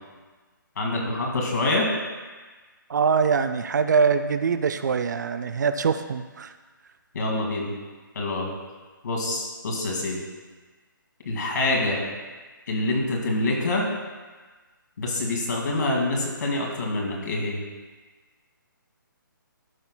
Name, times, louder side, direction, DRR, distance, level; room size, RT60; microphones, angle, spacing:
voice 1, 0.8-1.9 7.1-7.7 8.2-8.5 9.0-10.2 11.3-12.0 12.7-13.9 15.0-17.6, left 2 dB, 55° left, -1 dB, 2.0 m, -26 dB
voice 2, 2.9-6.5, right 5 dB, 55° right, 10 dB, 0.4 m, -23 dB
12.0 x 5.8 x 2.2 m, 1.3 s
hypercardioid pair, 165°, 11 cm